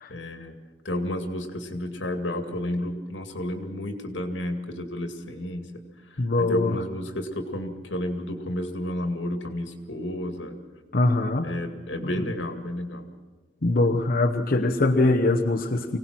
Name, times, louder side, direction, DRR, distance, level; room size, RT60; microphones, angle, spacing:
voice 1, 0.1-0.5 0.8-5.7 6.1-10.6 11.4-13.1, left 1 dB, 90° left, 6 dB, 2.2 m, -31 dB
voice 2, 6.2-6.8 10.9-11.5 12.0-12.3 13.6-16.0, left 2 dB, 50° left, 2 dB, 1.0 m, -23 dB
25.0 x 17.5 x 6.2 m, 1.4 s
head